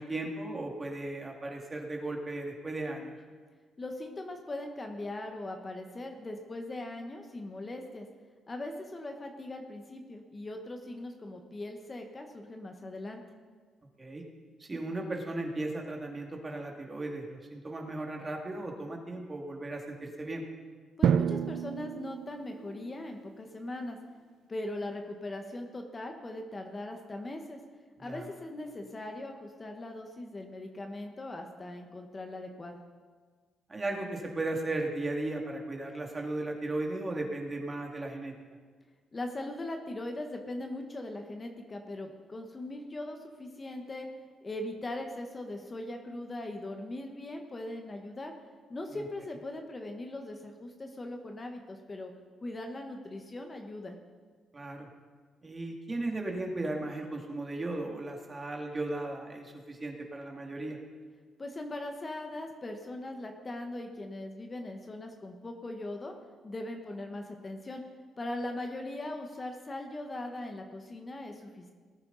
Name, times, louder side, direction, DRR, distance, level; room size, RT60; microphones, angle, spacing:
voice 1, 0.0-3.1 14.0-14.2 14.6-20.4 28.0-28.3 33.7-38.3 48.9-49.0 54.5-54.9 55.4-60.8, right 2 dB, 25° right, 1 dB, 2.3 m, -36 dB
voice 2, 3.8-8.1 8.5-13.2 21.0-24.0 24.5-27.6 28.0-32.8 39.1-44.1 44.4-48.3 48.7-52.1 52.4-54.0 61.4-66.1 66.4-67.8 68.2-71.7, left 1 dB, 30° left, 3 dB, 1.3 m, -40 dB
Drum, 21.0-23.0, right 8 dB, 65° right, 0.3 m, -29 dB
19.0 x 9.7 x 4.1 m, 1.5 s
cardioid pair, 90°, 0 cm